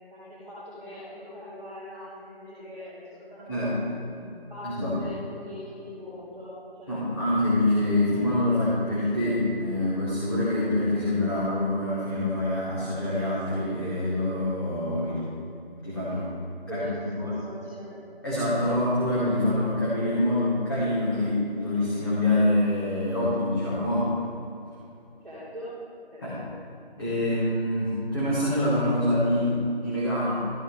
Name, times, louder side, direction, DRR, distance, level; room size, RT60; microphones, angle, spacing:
voice 1, 0.1-7.2 16.7-18.0 25.2-25.7 26.1-26.5, left 1 dB, ahead, -30 dB, 2.6 m, -41 dB
voice 2, 3.5-3.8 4.6-5.0 6.9-15.3 15.8-16.3 16.7-16.8 17.1-17.3 18.2-24.1 26.2-26.4 27.0-30.4, left 1 dB, 25° left, -11 dB, 1.9 m, -25 dB
13.5 x 8.7 x 3.4 m, 2.8 s
figure-of-eight pair, 170°, 31 cm